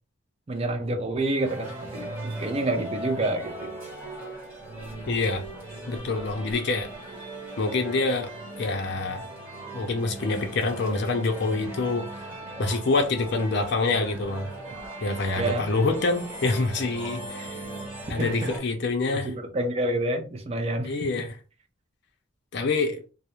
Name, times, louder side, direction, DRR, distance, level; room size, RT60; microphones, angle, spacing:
voice 1, 0.5-3.7 15.4-15.7 18.2-18.5 19.2-21.1, right 2 dB, 30° right, 0.4 m, -28 dB
sound 1, 1.4-18.6, right 1 dB, 10° right, 1.2 m, -39 dB
voice 2, 5.1-5.4 5.9-6.9 7.6-8.3 8.6-9.3 9.7-12.0 12.6-14.5 15.0-17.6 18.1-19.3 20.8-21.3 22.5-23.0, left 3 dB, 50° left, 0.4 m, -26 dB
2.3 x 2.0 x 2.9 m
head